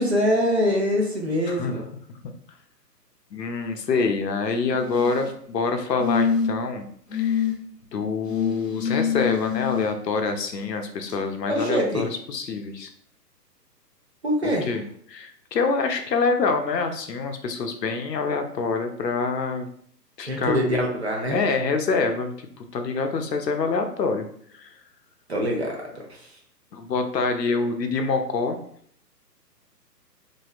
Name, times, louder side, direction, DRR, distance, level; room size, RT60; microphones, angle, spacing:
voice 1, 0.0-1.9 11.5-12.0 14.2-14.7 20.3-21.4 25.3-25.8, equal, 45° right, 0 dB, 0.5 m, -23 dB
voice 2, 3.3-7.5 7.9-12.9 14.4-19.7 20.2-20.6 21.3-24.3 24.5-24.7 26.7-28.6, left 4 dB, 80° left, 6 dB, 0.6 m, -26 dB
Blowing in water Bottle Manipulation, 4.7-5.3 6.0-6.7 7.1-7.5 8.3-9.9 11.1-11.2, left 7 dB, 40° left, 0.7 m, -25 dB
2.6 x 2.1 x 2.3 m, 0.62 s
figure-of-eight pair, 135°, 49 cm